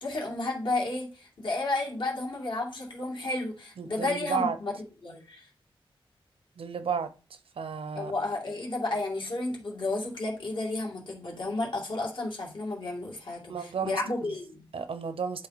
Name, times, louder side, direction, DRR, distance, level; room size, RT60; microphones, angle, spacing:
voice 1, 0.0-4.7 5.0-5.5 7.9-14.6, left 2 dB, 60° left, 2.4 m, -32 dB
voice 2, 3.8-4.6 6.6-7.1 7.6-8.1 13.5-14.0 14.7-15.5, right 6 dB, 80° right, 0.7 m, -32 dB
10.5 x 3.8 x 4.1 m
wide cardioid pair, 135°, 9 cm